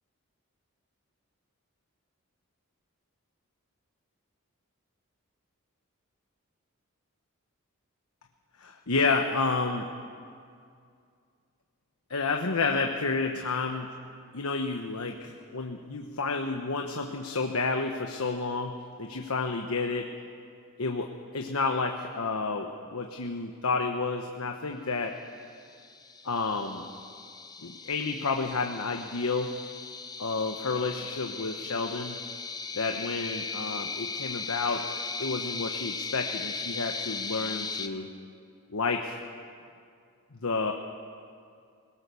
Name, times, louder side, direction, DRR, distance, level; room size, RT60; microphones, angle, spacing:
voice 1, 8.6-9.9 12.1-13.9 14.3-20.1 20.8-25.2 26.2-26.9 27.6-29.6 30.2-32.2 32.7-34.9 35.2-38.1 38.7-39.2 40.4-40.7, left 4 dB, 80° left, 3 dB, 1.1 m, -30 dB
sound 1, 25.7-37.9, left 4 dB, 15° left, 0.7 m, -38 dB
21.5 x 19.0 x 6.9 m, 2.3 s
head